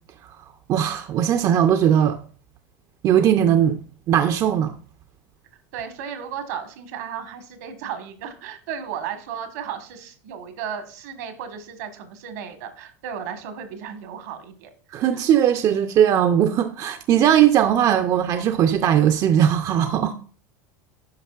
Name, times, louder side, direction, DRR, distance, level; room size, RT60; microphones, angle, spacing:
voice 1, 0.7-2.2 3.0-3.8 4.1-4.7 14.9-20.1, right 10 dB, 45° right, 0.5 m, -19 dB
voice 2, 5.7-14.7 15.0-15.2, right 8 dB, 75° right, 1.3 m, -34 dB
10.5 x 5.1 x 2.4 m
hypercardioid pair, 100°, 9 cm